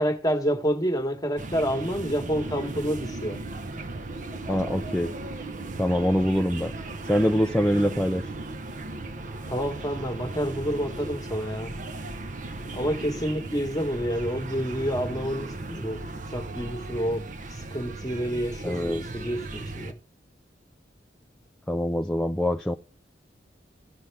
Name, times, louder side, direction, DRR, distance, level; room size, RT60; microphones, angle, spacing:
voice 1, 0.0-3.4 9.5-11.7 12.7-16.0 16.3-20.0, equal, 20° left, 1.2 m, -28 dB
sound 1, 1.4-19.9, right 2 dB, 45° right, 0.7 m, -36 dB
voice 2, 4.5-5.1 5.8-6.7 7.1-8.3 18.6-19.0 21.7-22.8, equal, 5° left, 0.4 m, -24 dB
16.0 x 5.7 x 3.3 m
head